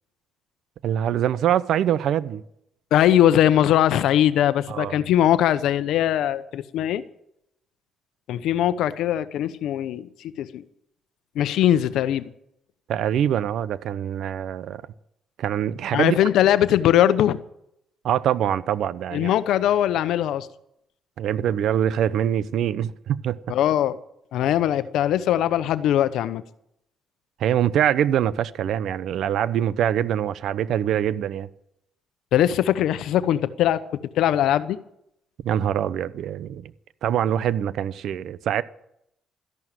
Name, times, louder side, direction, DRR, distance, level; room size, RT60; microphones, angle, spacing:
voice 1, 0.8-2.4 4.7-5.0 12.9-14.8 15.4-16.2 18.0-19.3 21.2-23.4 27.4-31.5 35.4-36.7 37.0-38.6, right 10 dB, 75° right, 0.8 m, -24 dB
voice 2, 2.9-7.0 8.3-10.6 11.3-12.3 15.9-17.4 19.1-20.5 23.5-24.0 24.3-26.4 32.3-33.8 34.1-34.8, left 11 dB, 85° left, 0.9 m, -21 dB
13.5 x 11.0 x 9.1 m
cardioid pair, 90°, 0 cm